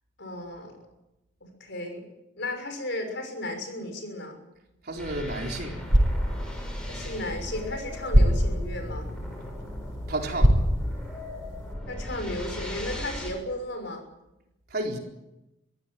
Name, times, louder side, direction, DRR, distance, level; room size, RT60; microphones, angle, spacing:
voice 1, 0.2-0.7 1.6-2.1 2.4-4.4 6.9-9.1 11.9-14.0, left 1 dB, 55° left, 5 dB, 6.2 m, -34 dB
voice 2, 4.8-5.8 10.1-10.5 14.7-15.0, right 2 dB, 50° right, 1 dB, 4.3 m, -31 dB
sound 1, 5.0-13.3, left 1 dB, 5° left, 6.7 m, -37 dB
sound 2, 5.7-11.7, equal, 65° right, 5.9 m, -26 dB
24.5 x 15.5 x 9.2 m, 0.93 s
head